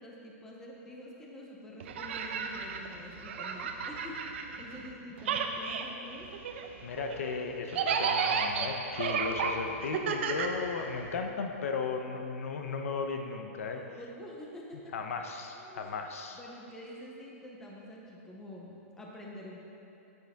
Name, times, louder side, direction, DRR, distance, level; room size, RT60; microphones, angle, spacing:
voice 1, 0.0-6.3 13.7-14.9 15.5-15.9 16.3-19.6, left 1 dB, 5° left, -2 dB, 0.6 m, -47 dB
sound 1, 1.8-4.9 5.2-11.2, right 6 dB, 50° right, 0.7 m, -33 dB
voice 2, 6.8-14.0 14.9-16.4, left 5 dB, 65° left, 4 dB, 0.9 m, -36 dB
9.7 x 9.3 x 3.6 m, 2.9 s
supercardioid pair, 175°, 8 cm